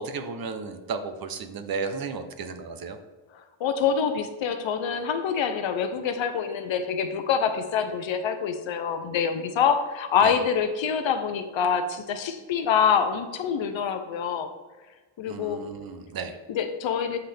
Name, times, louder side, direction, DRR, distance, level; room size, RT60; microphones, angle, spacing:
voice 1, 0.0-3.0 10.2-10.3 15.3-16.3, right 4 dB, 45° right, 8 dB, 0.8 m, -34 dB
voice 2, 3.6-14.5 15.2-15.6 16.5-17.2, left 7 dB, 65° left, 8 dB, 0.8 m, -26 dB
8.0 x 5.6 x 3.5 m, 1.3 s
cardioid pair, 120°, 50 cm